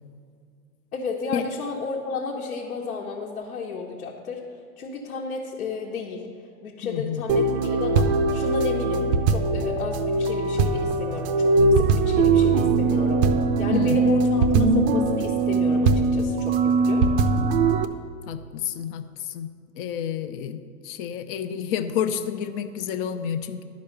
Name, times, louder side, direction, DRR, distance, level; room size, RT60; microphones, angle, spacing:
voice 1, 0.9-4.4 4.8-6.2 6.6-13.2 13.6-14.4 14.7-17.1, left 4 dB, 70° left, -3 dB, 1.3 m, -32 dB
voice 2, 6.8-7.3 13.7-14.2 18.3-19.5 19.8-23.6, left 8 dB, 40° left, 9 dB, 0.6 m, -29 dB
sound 1, 7.3-17.9, right 3 dB, 35° right, 0.6 m, -21 dB
11.5 x 5.3 x 6.6 m, 2.3 s
hypercardioid pair, 110°, 45 cm